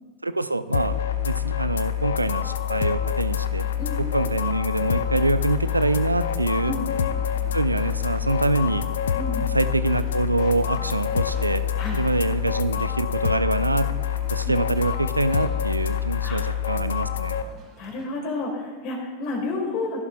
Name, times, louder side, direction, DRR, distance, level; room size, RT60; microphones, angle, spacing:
voice 1, 0.2-1.0 1.2-3.7 4.0-6.7 7.5-8.9 9.4-11.6 11.9-13.9 14.3-17.4, right 2 dB, 85° right, 13 dB, 0.4 m, -25 dB
sound 1, 0.7-17.4, left 9 dB, 65° left, 0.5 m, -26 dB
sound 2, 0.9-18.1, right 3 dB, 30° right, 2.1 m, -49 dB
voice 2, 17.8-20.0, left 3 dB, 45° left, 1 dB, 2.9 m, -30 dB
15.5 x 11.5 x 2.5 m, 1.4 s
figure-of-eight pair, 90°, 0 cm